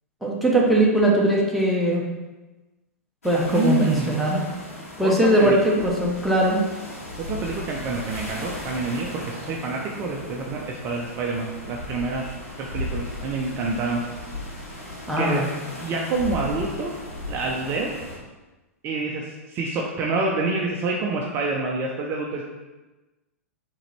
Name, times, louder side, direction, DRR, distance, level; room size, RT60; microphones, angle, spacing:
voice 1, 0.2-2.0 3.2-4.4 5.0-6.6 15.1-15.5, right 1 dB, ahead, -4 dB, 0.9 m, -20 dB
sound 1, 3.2-18.2, left 1 dB, 80° left, 1.5 m, -36 dB
voice 2, 3.5-4.2 5.0-5.8 7.3-14.0 15.2-15.4 15.8-16.9 17.3-17.9 18.8-22.4, right 3 dB, 30° right, -1 dB, 0.5 m, -27 dB
4.8 x 3.0 x 3.2 m, 1.1 s
figure-of-eight pair, 100°, 8 cm